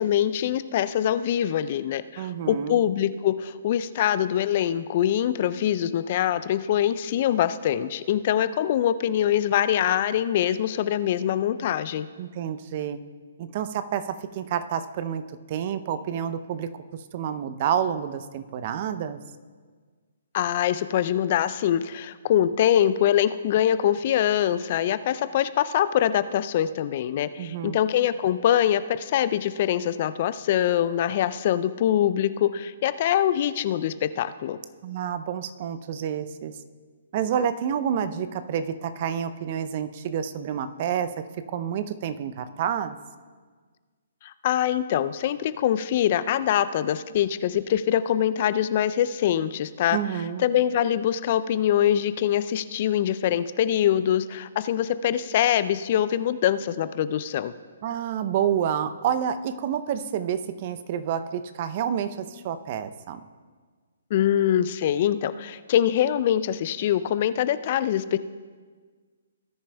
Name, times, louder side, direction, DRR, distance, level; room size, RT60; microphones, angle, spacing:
voice 1, 0.0-12.1 20.3-34.6 44.2-50.0 50.4-57.5 64.1-68.2, left 10 dB, 45° left, 14 dB, 0.4 m, -24 dB
voice 2, 2.2-2.8 12.2-13.0 13.4-15.2 15.5-16.7 17.1-19.2 27.4-27.8 34.8-36.5 37.1-43.0 49.9-50.4 57.8-63.2, right 9 dB, 40° right, 11 dB, 0.6 m, -29 dB
18.5 x 10.0 x 2.3 m, 1.5 s
figure-of-eight pair, 130°, 0 cm